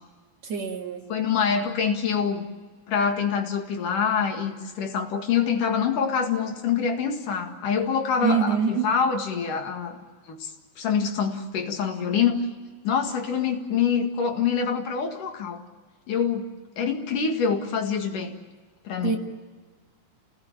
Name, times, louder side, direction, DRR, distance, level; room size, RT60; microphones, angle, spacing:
voice 1, 0.4-1.1 8.2-8.9 19.0-19.2, right 6 dB, 55° right, 2 dB, 2.7 m, -25 dB
voice 2, 1.1-2.5 2.9-10.0 10.3-12.4 12.8-15.6 16.1-16.5 16.8-18.4 18.8-19.2, left 6 dB, 65° left, 4 dB, 3.4 m, -25 dB
29.5 x 19.0 x 8.8 m, 1.4 s
omnidirectional pair, 4.2 m